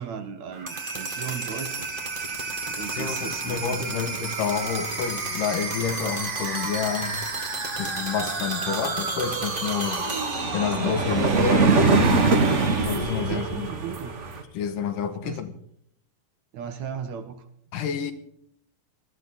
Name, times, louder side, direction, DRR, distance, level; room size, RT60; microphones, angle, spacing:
voice 1, 0.0-1.9 2.3-4.0 13.3-14.2 15.2-15.4 16.5-17.5, right 8 dB, 65° right, 2.3 m, -36 dB
sound 1, 0.5-14.4, right 3 dB, 30° right, 0.9 m, -31 dB
voice 2, 3.0-7.2 7.8-10.0 10.5-11.9 12.8-13.7 14.5-15.5 17.7-18.1, left 7 dB, 90° left, 2.9 m, -29 dB
sound 2, 6.0-7.3 8.7-8.8 10.5-10.9, right 2 dB, 50° right, 3.5 m, -40 dB
sound 3, 8.3-8.4 8.7-14.4, right 3 dB, 85° right, 0.6 m, -23 dB
19.5 x 14.0 x 4.0 m
omnidirectional pair, 3.8 m